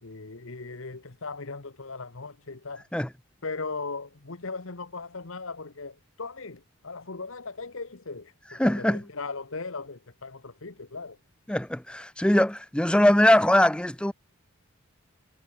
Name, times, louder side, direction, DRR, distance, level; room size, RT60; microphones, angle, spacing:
voice 1, 0.0-2.9 3.4-11.2, left 4 dB, 65° left, 1.2 m, -38 dB
voice 2, 8.6-9.0 11.5-14.1, left 1 dB, 5° left, 0.5 m, -21 dB
head